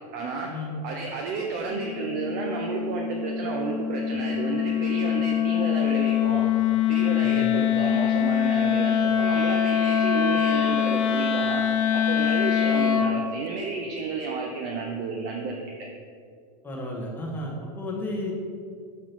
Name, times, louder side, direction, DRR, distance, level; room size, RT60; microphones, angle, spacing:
voice 1, 0.1-0.5 0.8-6.5 6.9-11.6 11.9-15.6, right 4 dB, 45° right, 1 dB, 0.7 m, -31 dB
Wind instrument woodwind instrument, 1.7-13.2, left 9 dB, 55° left, 0.7 m, -24 dB
voice 2, 16.6-18.3, left 1 dB, 10° left, -2 dB, 1.2 m, -33 dB
6.7 x 3.7 x 6.0 m, 2.2 s
supercardioid pair, 130°, 21 cm